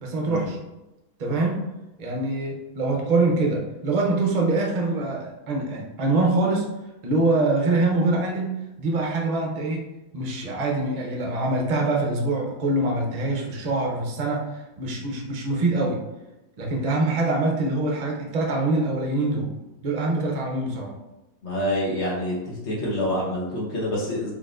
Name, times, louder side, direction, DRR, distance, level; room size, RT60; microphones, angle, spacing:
voice 1, 0.0-0.6 1.2-1.7 2.0-6.7 7.0-14.5 14.8-16.0 16.6-19.5 19.8-20.9, right 2 dB, 40° right, 0 dB, 0.5 m, -24 dB
voice 2, 21.4-22.3 22.6-24.3, left 1 dB, 50° left, -4 dB, 1.3 m, -26 dB
4.2 x 3.5 x 2.5 m, 0.98 s
omnidirectional pair, 1.6 m